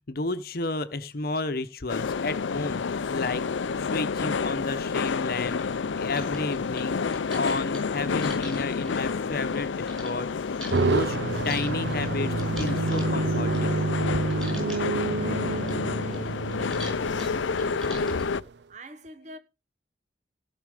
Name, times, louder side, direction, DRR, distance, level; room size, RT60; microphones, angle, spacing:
voice 1, 0.1-3.4 3.8-5.6 5.9-11.2 11.4-13.8, left 3 dB, 55° left, 0.9 m, -32 dB
sound 1, 1.9-18.4, left 5 dB, 85° left, 0.5 m, -30 dB
sound 2, 3.8-3.9 4.5-4.6 4.9-10.1 10.6-14.0 14.3-15.0 15.3-18.3, equal, ahead, 6.0 m, -43 dB
sound 3, 10.7-18.4, right 3 dB, 65° right, 0.6 m, -28 dB
voice 2, 14.4-19.4, right 1 dB, 40° right, 1.0 m, -48 dB
16.5 x 6.1 x 5.0 m
head